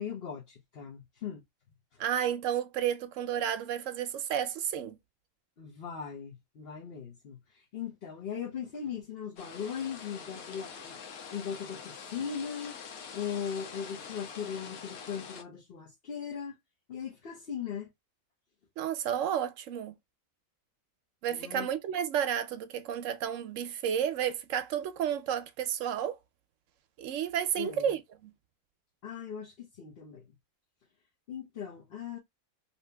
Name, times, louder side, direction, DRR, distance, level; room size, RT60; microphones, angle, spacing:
voice 1, 0.0-1.4 5.6-11.0 11.3-12.8 13.1-16.6 16.9-17.9 21.3-21.7 27.6-27.9 29.0-30.3 31.3-32.2, left 7 dB, 50° left, 0.9 m, -39 dB
voice 2, 2.0-5.0 18.8-19.9 21.2-26.2 27.0-28.3, right 9 dB, 70° right, 0.9 m, -31 dB
sound 1, 9.4-15.4, left 6 dB, 80° left, 1.2 m, -45 dB
2.9 x 2.7 x 3.3 m
omnidirectional pair, 1.5 m